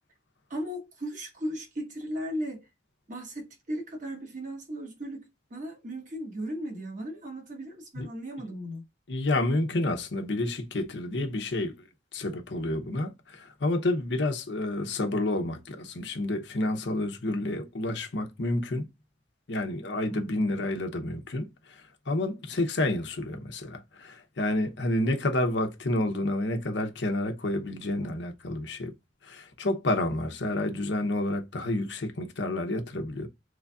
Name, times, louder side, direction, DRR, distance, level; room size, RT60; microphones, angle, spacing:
voice 1, 0.5-2.6 3.1-8.8 20.1-20.3 28.0-28.2, equal, 45° right, 1.3 m, -36 dB
voice 2, 9.1-18.9 19.5-28.9 29.2-33.3, left 1 dB, 75° left, 0.8 m, -29 dB
3.9 x 3.2 x 2.3 m
head